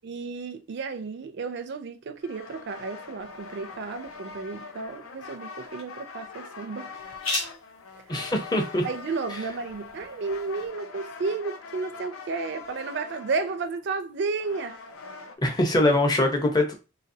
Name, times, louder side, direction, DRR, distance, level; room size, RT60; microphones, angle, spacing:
voice 1, 0.0-7.1 7.9-8.0 8.8-14.8, right 4 dB, 55° right, 0.4 m, -32 dB
sound 1, 2.2-15.4, left 4 dB, 85° left, 0.5 m, -43 dB
sound 2, 3.2-10.7, left 2 dB, 65° left, 1.5 m, -40 dB
voice 2, 8.1-8.9 9.3-9.4 15.4-16.7, left 1 dB, 20° left, 0.6 m, -23 dB
4.0 x 2.7 x 2.6 m
head